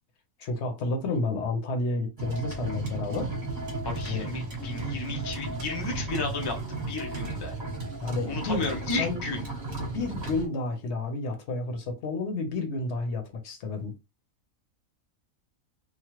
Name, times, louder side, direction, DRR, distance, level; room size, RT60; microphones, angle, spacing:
voice 1, 0.4-3.3 4.1-4.3 8.0-8.7 9.0-9.2 9.8-13.9, left 3 dB, 60° left, 0.9 m, -30 dB
sound 1, 2.2-10.5, right 3 dB, 35° right, 1.0 m, -35 dB
Female singing, 3.1-10.8, right 4 dB, 65° right, 1.0 m, -48 dB
voice 2, 3.8-6.6 6.8-7.5 8.3-9.5, left 3 dB, 40° left, 0.3 m, -33 dB
3.0 x 2.1 x 3.0 m
omnidirectional pair, 1.4 m